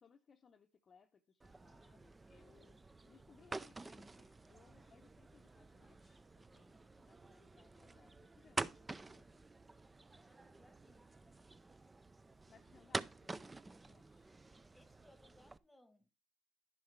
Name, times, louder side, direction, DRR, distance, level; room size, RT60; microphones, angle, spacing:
voice 1, 0.0-9.5 12.5-14.3, left 6 dB, 35° left, 0.7 m, -68 dB
sound 1, 1.4-15.6, right 3 dB, 15° right, 0.4 m, -49 dB
voice 2, 10.1-11.6 14.7-16.1, left 1 dB, 5° left, 1.2 m, -68 dB
10.5 x 7.3 x 3.2 m
supercardioid pair, 95°, 0 cm